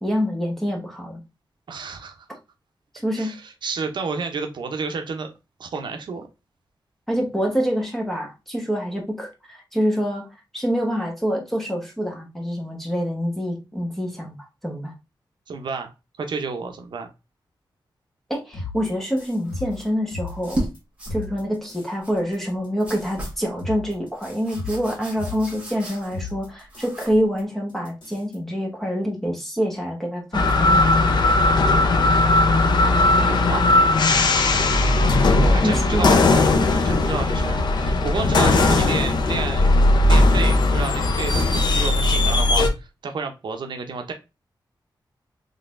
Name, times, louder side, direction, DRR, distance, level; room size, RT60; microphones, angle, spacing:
voice 1, 0.0-1.2 3.0-3.3 7.1-10.2 10.5-14.9 18.3-20.6 21.1-30.8 35.6-36.3, equal, 5° left, 0 dB, 1.1 m, -26 dB
voice 2, 1.7-2.2 3.1-5.3 5.6-6.3 15.5-17.1 33.3-33.7 35.4-36.2 36.6-39.7 40.1-44.1, right 4 dB, 70° right, 4 dB, 0.6 m, -30 dB
sound 1, 18.5-20.8 21.1-21.9 22.2-25.8 26.1-27.1 27.4-27.5 27.7-28.4, left 3 dB, 80° left, 2.5 m, -36 dB
sound 2, 19.5-19.9 20.3-20.7 21.0-21.2 22.0-22.2 22.8-23.4 24.1-26.3 26.7-27.2, right 1 dB, 15° right, 1.5 m, -34 dB
sound 3, 30.3-42.7, left 2 dB, 65° left, 0.6 m, -18 dB
3.9 x 3.3 x 2.5 m, 0.26 s
wide cardioid pair, 170°, 8 cm